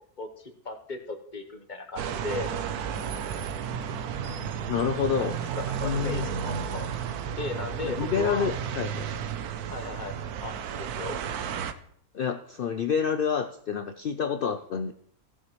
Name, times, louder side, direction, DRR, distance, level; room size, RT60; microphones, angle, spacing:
voice 1, 0.2-2.5 4.2-4.7 5.1-8.6 9.7-10.2 10.4-11.2, left 3 dB, 35° left, 6 dB, 1.0 m, -37 dB
sound 1, 2.0-11.7, right 7 dB, 85° right, 1.2 m, -33 dB
voice 2, 4.6-5.3 5.8-6.3 7.8-9.1 12.1-14.9, left 6 dB, 85° left, 9 dB, 0.4 m, -28 dB
16.5 x 7.4 x 3.1 m, 0.64 s
omnidirectional pair, 1.6 m